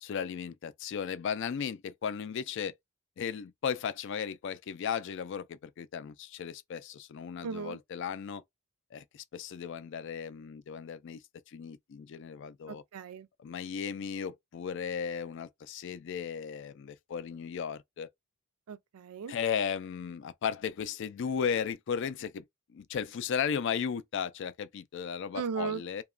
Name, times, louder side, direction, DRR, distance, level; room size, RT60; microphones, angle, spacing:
voice 1, 0.0-2.7 3.2-8.4 8.9-11.2 11.5-12.8 13.4-18.1 19.3-22.4 22.7-26.0, left 7 dB, 55° left, 0.3 m, -35 dB
voice 2, 7.4-7.8 12.7-13.3 18.7-19.3 25.3-25.8, right 6 dB, 90° right, 0.4 m, -36 dB
2.9 x 2.2 x 2.3 m
head